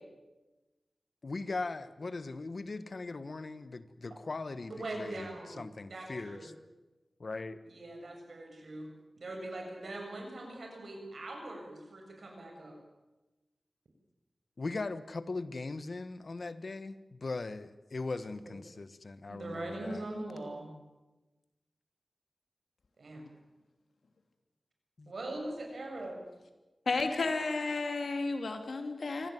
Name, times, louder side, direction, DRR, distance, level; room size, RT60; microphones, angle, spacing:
voice 1, 1.2-6.5 7.2-7.6 14.6-20.1 25.0-25.1, left 3 dB, 60° left, 13 dB, 1.3 m, -39 dB
voice 2, 4.7-5.6 5.9-6.5 7.6-8.9 9.2-12.8 18.4-18.5 19.3-20.7 23.0-23.2 25.1-26.2, right 2 dB, 85° right, 2 dB, 7.1 m, -41 dB
voice 3, 26.9-29.3, left 3 dB, 90° left, 6 dB, 3.0 m, -32 dB
25.0 x 17.0 x 9.4 m, 1.1 s
wide cardioid pair, 95°, 0 cm